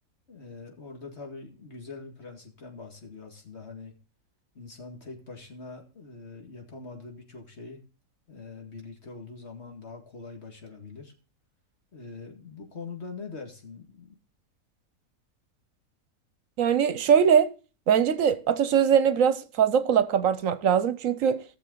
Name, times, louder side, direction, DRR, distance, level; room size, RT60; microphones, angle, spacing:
voice 1, 0.3-3.9 4.5-7.8 8.3-11.1 11.9-14.2, left 4 dB, 50° left, 2.4 m, -43 dB
voice 2, 16.6-17.5 17.9-21.4, right 8 dB, 70° right, 1.1 m, -22 dB
17.0 x 6.8 x 3.9 m
omnidirectional pair, 1.4 m